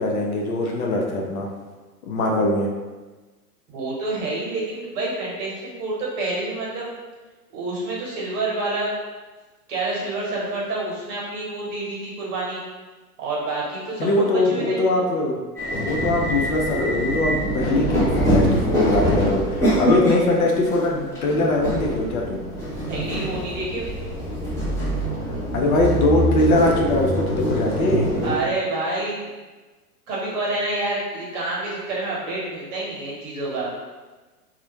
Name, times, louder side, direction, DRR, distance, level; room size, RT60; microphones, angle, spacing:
voice 1, 0.0-1.5 2.0-2.7 14.0-15.4 15.7-22.4 25.5-28.1, left 2 dB, 65° left, 0 dB, 0.6 m, -22 dB
voice 2, 3.7-6.9 7.5-8.9 9.7-12.6 13.2-14.8 22.9-23.9 28.2-29.3 30.1-33.7, right 2 dB, 50° right, -4 dB, 1.1 m, -28 dB
sound 1, 15.6-28.3, equal, 5° left, 0.7 m, -24 dB
2.3 x 2.0 x 2.9 m, 1.3 s
hypercardioid pair, 110°, 47 cm